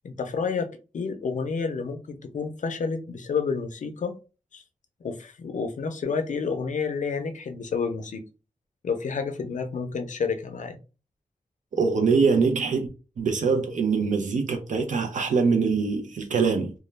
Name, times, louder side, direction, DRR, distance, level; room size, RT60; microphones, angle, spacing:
voice 1, 0.0-0.7 0.9-4.1 4.5-4.6 5.0-8.2 8.8-10.8, left 5 dB, 65° left, 0.5 m, -29 dB
voice 2, 11.7-12.9 13.2-16.7, right 5 dB, 65° right, 0.5 m, -23 dB
2.2 x 2.1 x 3.1 m
wide cardioid pair, 90°, 14 cm